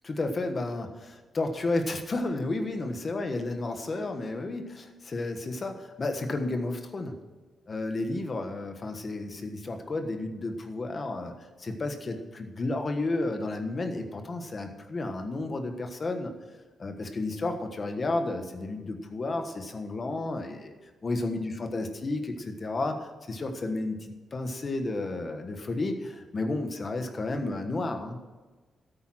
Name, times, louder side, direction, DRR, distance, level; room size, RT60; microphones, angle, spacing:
voice 1, 0.0-7.2 7.7-11.3 11.6-16.3 16.8-20.7 21.0-28.2, left 2 dB, 30° left, 6 dB, 1.3 m, -32 dB
13.0 x 9.1 x 6.2 m, 1.3 s
wide cardioid pair, 165°, 0 cm